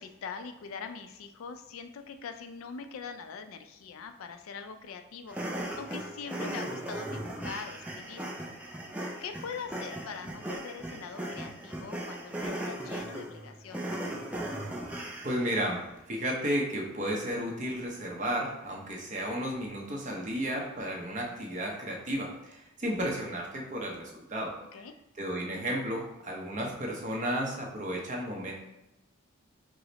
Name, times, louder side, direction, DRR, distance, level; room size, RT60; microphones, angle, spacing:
voice 1, 0.0-8.2 9.2-13.9 24.7-24.9, left 6 dB, 75° left, 7 dB, 0.4 m, -43 dB
sound 1, 5.3-15.5, right 1 dB, 5° right, 0.3 m, -38 dB
voice 2, 15.2-24.5 25.2-28.5, equal, 35° right, -1 dB, 0.7 m, -33 dB
4.8 x 2.0 x 3.9 m, 0.92 s
head